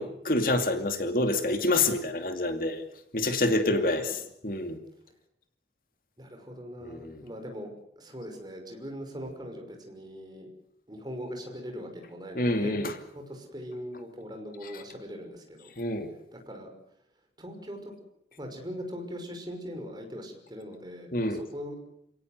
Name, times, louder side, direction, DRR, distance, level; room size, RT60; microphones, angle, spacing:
voice 1, 0.0-2.8 3.1-4.8 6.8-7.2 12.3-12.9 14.6-14.7 15.8-16.1 21.1-21.4, left 2 dB, 55° left, 7 dB, 2.6 m, -27 dB
voice 2, 3.7-4.2 6.2-10.5 10.9-15.7 16.3-16.7 17.4-17.9 18.4-21.8, equal, 25° right, 4 dB, 5.9 m, -40 dB
29.5 x 18.0 x 8.0 m, 0.76 s
head